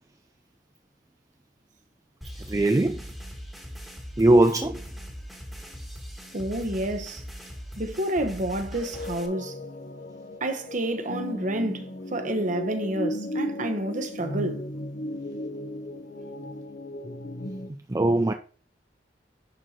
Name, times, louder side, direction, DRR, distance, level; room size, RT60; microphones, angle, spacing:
sound 1, 2.2-9.3, equal, ahead, 1.5 m, -40 dB
voice 1, 2.5-3.0 4.2-4.8 17.9-18.3, right 1 dB, 20° right, 0.4 m, -20 dB
voice 2, 6.3-7.2 7.8-9.5 10.4-11.9 12.1-14.7, right 1 dB, 45° right, 1.0 m, -29 dB
sound 2, 8.8-17.7, left 1 dB, 45° left, 0.9 m, -35 dB
10.5 x 4.4 x 2.9 m
head